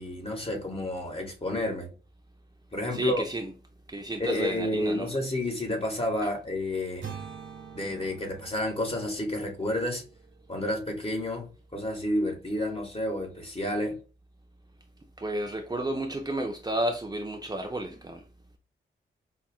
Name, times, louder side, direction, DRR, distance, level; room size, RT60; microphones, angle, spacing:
voice 1, 0.0-1.9 2.7-3.2 4.2-7.1 7.7-10.0 10.5-11.5 11.7-14.0, left 1 dB, 30° left, 1.6 m, -30 dB
voice 2, 2.9-3.5 3.9-5.1 6.2-6.3 15.2-18.2, right 1 dB, 20° right, 0.6 m, -32 dB
sound 1, 7.0-11.0, right 7 dB, 65° right, 1.2 m, -45 dB
5.5 x 2.4 x 2.4 m
supercardioid pair, 45°, 20 cm